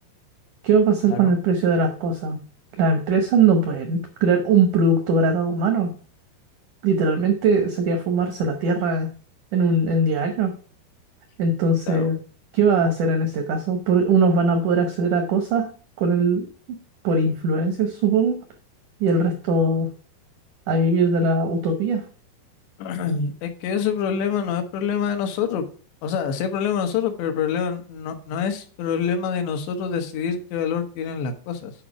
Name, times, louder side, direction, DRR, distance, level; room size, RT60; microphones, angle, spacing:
voice 1, 0.6-2.4 2.8-5.9 6.8-9.1 9.5-10.5 11.4-12.2 12.5-15.7 16.0-16.5 17.0-18.4 19.0-19.9 20.7-22.0, right 3 dB, 85° right, 6 dB, 1.7 m, -20 dB
voice 2, 22.8-25.7 26.0-31.7, left 7 dB, 85° left, 6 dB, 3.3 m, -26 dB
8.5 x 5.2 x 4.8 m, 0.42 s
omnidirectional pair, 4.9 m